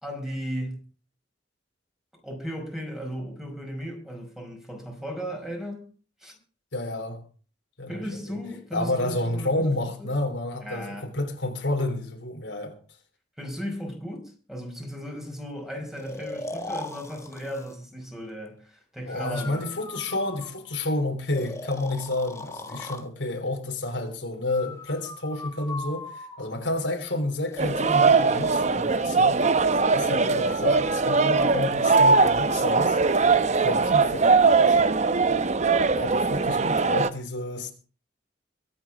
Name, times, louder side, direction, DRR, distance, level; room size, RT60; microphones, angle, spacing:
voice 1, 0.0-0.8 2.2-5.9 6.2-6.3 7.9-10.1 10.6-11.1 13.4-19.6, equal, ahead, 5.2 m, -36 dB
voice 2, 6.7-7.2 7.8-8.4 8.7-12.7 19.1-29.6 29.9-33.0 33.3-34.8 35.8-37.7, left 2 dB, 90° left, 3.5 m, -30 dB
Breathing, 16.0-17.8 19.1-20.8 21.3-23.1 24.5-26.7 27.5-28.7 30.3-33.2, left 2 dB, 15° left, 1.5 m, -40 dB
sound 1, 27.6-37.1, right 4 dB, 40° right, 0.8 m, -21 dB
22.5 x 9.0 x 4.9 m
head